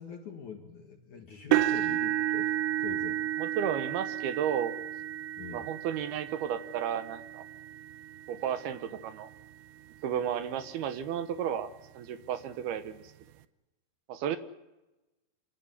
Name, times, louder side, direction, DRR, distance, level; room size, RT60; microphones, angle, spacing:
voice 1, 0.0-2.5 2.8-3.2 5.4-5.7, left 6 dB, 55° left, 3 dB, 2.6 m, -43 dB
sound 1, 1.5-9.5 10.2-10.4 10.9-11.0 12.3-12.4, right 14 dB, 90° right, 3.3 m, -32 dB
voice 2, 3.4-4.7 5.5-7.4 8.3-9.3 10.0-13.1 14.1-14.4, right 9 dB, 70° right, 11 dB, 2.8 m, -33 dB
27.5 x 14.5 x 9.7 m, 1.0 s
omnidirectional pair, 5.3 m